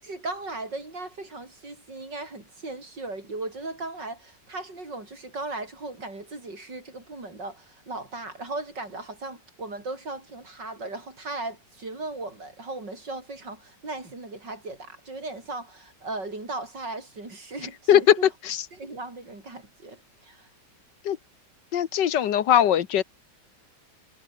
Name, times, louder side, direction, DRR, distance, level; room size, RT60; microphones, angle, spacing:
voice 1, 0.0-18.3 18.7-20.5, right 2 dB, 90° right, 6.9 m, -37 dB
voice 2, 21.7-23.0, left 10 dB, 85° left, 1.8 m, -20 dB
omnidirectional pair, 1.9 m